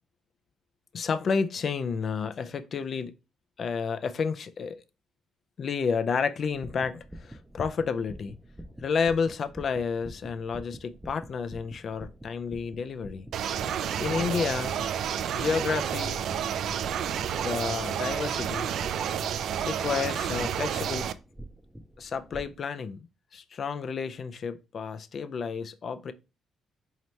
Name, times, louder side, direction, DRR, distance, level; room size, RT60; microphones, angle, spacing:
voice 1, 0.9-3.1 3.6-4.8 5.6-8.4 8.8-13.3 14.0-14.7 15.3-16.3 17.4-18.7 19.6-21.1 22.0-23.0 23.3-26.1, left 5 dB, 50° left, 0.4 m, -30 dB
sound 1, 6.4-22.6, right 1 dB, 5° right, 0.5 m, -47 dB
sound 2, 13.3-21.1, right 9 dB, 70° right, 0.3 m, -30 dB
4.3 x 2.8 x 3.1 m
cardioid pair, 90°, 0 cm